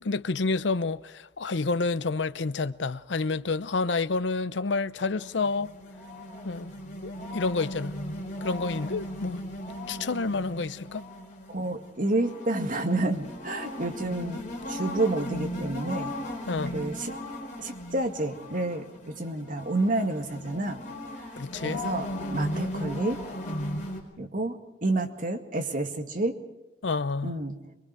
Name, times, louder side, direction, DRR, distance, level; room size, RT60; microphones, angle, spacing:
voice 1, 0.0-5.7 6.4-6.7 7.0-8.0 8.4-9.4 9.9-11.0 16.5-16.8 21.4-21.8 26.8-27.3, left 3 dB, 75° left, 0.7 m, -29 dB
sound 1, 5.2-24.0, left 1 dB, 45° left, 4.7 m, -37 dB
voice 2, 11.5-14.4 14.7-16.1 16.7-17.1 17.6-20.8 21.5-23.2 24.2-26.4 27.2-27.6, right 2 dB, 50° right, 2.1 m, -29 dB
23.5 x 23.0 x 4.9 m
head